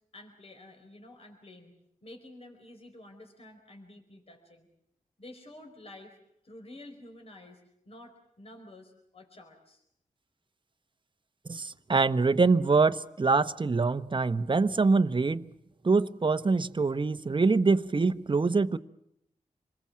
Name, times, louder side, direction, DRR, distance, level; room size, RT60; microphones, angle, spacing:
voice 1, 0.1-1.7 2.0-4.7 5.2-6.2 6.4-9.8, left 1 dB, 50° left, 4.4 m, -50 dB
voice 2, 11.5-15.5 15.8-18.8, right 4 dB, 35° right, 1.0 m, -24 dB
27.0 x 21.0 x 7.5 m
cardioid pair, 70°, 13 cm